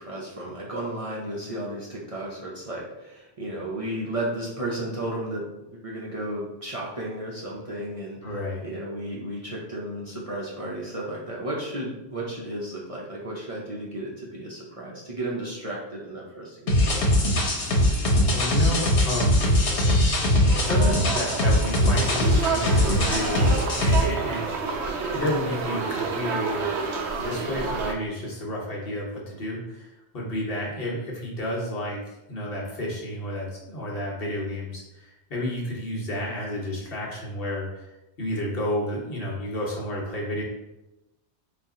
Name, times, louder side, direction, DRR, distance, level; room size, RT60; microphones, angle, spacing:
voice 1, 0.0-8.2 8.6-17.0, right 1 dB, 35° right, -5 dB, 0.7 m, -33 dB
voice 2, 8.2-8.7 18.3-19.6 20.6-23.5 23.8-24.6 25.1-26.6 27.2-32.0 32.3-37.9 38.2-40.4, left 1 dB, 60° left, -3 dB, 1.2 m, -31 dB
sound 1, 16.7-24.0, left 1 dB, 90° left, 1.2 m, -21 dB
sound 2, 20.4-27.9, right 4 dB, 85° right, 0.9 m, -29 dB
4.2 x 2.4 x 3.6 m, 0.95 s
omnidirectional pair, 1.1 m